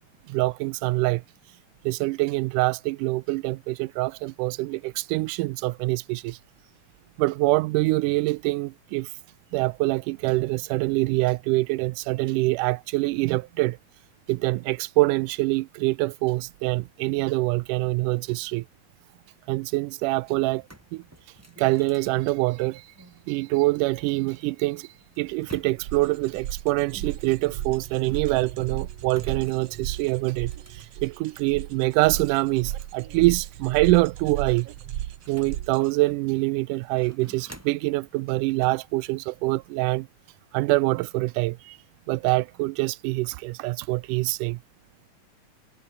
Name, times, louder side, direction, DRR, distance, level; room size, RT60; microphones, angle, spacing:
voice 1, 0.3-1.2 1.8-6.4 7.2-9.1 9.5-13.8 14.3-18.7 19.5-20.6 20.9-21.0 21.6-22.9 23.3-24.9 25.2-34.7 35.3-40.1 40.5-41.8 42.1-44.6, right 21 dB, 90° right, 2.1 m, -25 dB
sound 1, 20.6-23.2 24.1-26.1 26.9-28.5 29.1-31.5 31.9-33.0 33.3-33.4 33.8-36.4 36.8-37.9 38.6-38.9, right 1 dB, 5° right, 2.7 m, -50 dB
sound 2, 25.8-35.9, right 12 dB, 60° right, 1.9 m, -35 dB
omnidirectional pair, 3.6 m